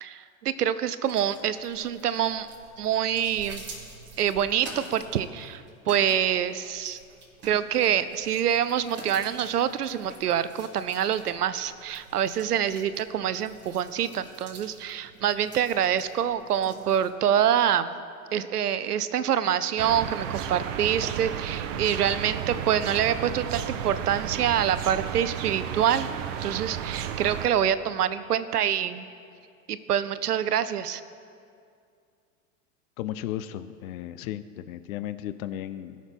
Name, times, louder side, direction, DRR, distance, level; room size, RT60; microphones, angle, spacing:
voice 1, 0.0-2.5 2.8-3.6 4.2-7.0 7.4-17.9 18.3-26.1 26.4-29.1 29.7-31.0, right 9 dB, 90° right, 14 dB, 0.6 m, -26 dB
sound 1, 1.0-17.1, right 3 dB, 25° right, 3.0 m, -47 dB
sound 2, 19.8-27.5, right 9 dB, 55° right, 0.8 m, -33 dB
voice 2, 33.0-36.0, left 12 dB, 65° left, 13 dB, 0.6 m, -35 dB
19.0 x 6.3 x 3.5 m, 2.4 s
hypercardioid pair, 100°, 45 cm